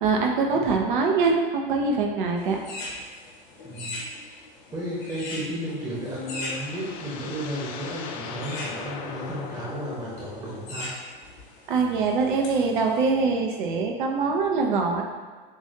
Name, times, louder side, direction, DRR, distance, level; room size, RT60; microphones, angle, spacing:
voice 1, 0.0-2.6 11.7-15.0, right 4 dB, 55° right, 2 dB, 0.8 m, -23 dB
sound 1, 2.4-13.1, left 1 dB, 50° left, 1.3 m, -40 dB
voice 2, 3.6-4.0 4.7-10.9, right 1 dB, 10° right, -7 dB, 1.1 m, -33 dB
sound 2, 5.7-10.9, left 6 dB, 30° left, 0.4 m, -39 dB
7.0 x 2.6 x 2.8 m, 1.5 s
figure-of-eight pair, 95°, 29 cm